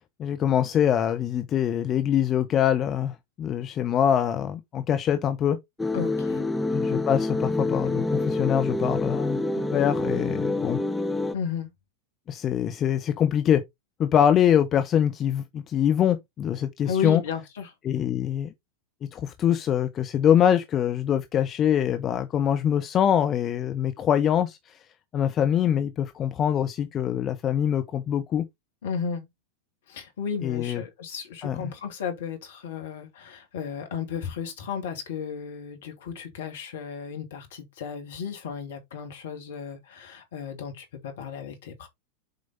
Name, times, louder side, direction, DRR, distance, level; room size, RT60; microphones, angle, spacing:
voice 1, 0.2-5.6 6.7-9.4 9.7-10.8 12.3-13.6 14.0-17.2 17.8-18.5 19.1-24.7 25.1-28.5 30.4-30.8 31.4-31.6, left 9 dB, 30° left, 0.9 m, -24 dB
sound 1, 5.8-11.3, left 2 dB, 5° left, 0.9 m, -27 dB
voice 2, 5.9-6.5 11.3-11.7 16.9-17.7 28.8-29.2 29.9-41.9, left 7 dB, 60° left, 2.5 m, -34 dB
7.8 x 5.0 x 3.9 m
figure-of-eight pair, 90°, 0 cm